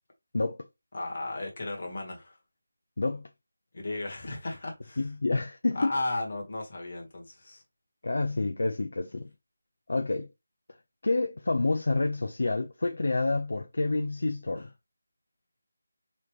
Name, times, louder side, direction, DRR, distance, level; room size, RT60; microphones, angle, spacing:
voice 1, 0.9-2.4 3.7-5.0 5.7-7.6 14.6-14.7, left 2 dB, 45° left, 1.6 m, -35 dB
voice 2, 3.0-3.3 5.0-5.9 8.0-9.3 9.9-10.3 11.0-14.7, left 3 dB, 65° left, 0.5 m, -28 dB
4.0 x 3.4 x 3.1 m
figure-of-eight pair, 175°, 0 cm